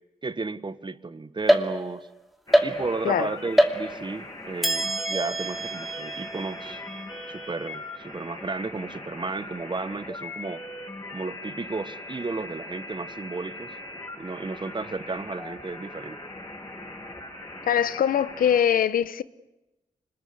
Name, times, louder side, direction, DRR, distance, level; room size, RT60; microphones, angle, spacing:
voice 1, 0.2-2.1 2.6-6.8 7.3-10.6 11.1-13.7 14.2-16.2, right 3 dB, 35° right, 1.4 m, -33 dB
sound 1, 1.5-2.1 2.5-3.2 3.6-4.2 4.6-8.1, right 1 dB, ahead, 2.6 m, -26 dB
sound 2, 2.5-18.6, left 2 dB, 25° left, 6.9 m, -40 dB
voice 2, 17.6-19.2, left 9 dB, 90° left, 0.9 m, -22 dB
25.5 x 21.0 x 9.6 m
cardioid pair, 65°, 14 cm